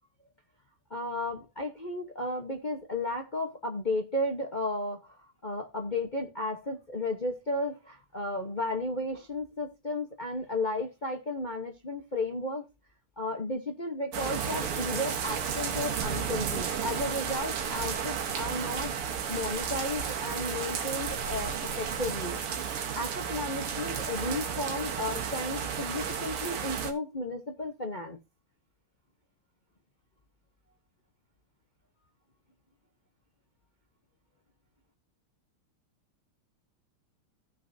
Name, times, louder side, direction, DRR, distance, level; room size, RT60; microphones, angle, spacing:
voice 1, 0.9-12.6 13.2-19.0 19.3-22.4 22.9-28.2, left 2 dB, 45° left, 0.6 m, -34 dB
sound 1, 14.1-26.9, right 7 dB, 80° right, 2.2 m, -33 dB
16.0 x 6.2 x 2.7 m
omnidirectional pair, 2.4 m